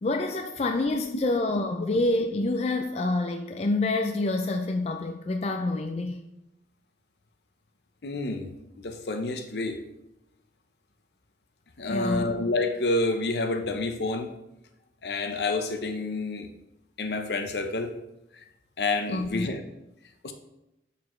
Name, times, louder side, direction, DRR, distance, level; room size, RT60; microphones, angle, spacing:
voice 1, 0.0-6.2 11.9-12.3 19.1-19.5, left 2 dB, 35° left, 5 dB, 0.3 m, -27 dB
voice 2, 8.0-9.8 11.8-14.3 15.0-16.5 17.0-18.0 18.3-18.4 18.8-19.6 20.2-20.3, left 2 dB, 65° left, 6 dB, 0.7 m, -29 dB
11.0 x 4.1 x 3.1 m, 0.91 s
head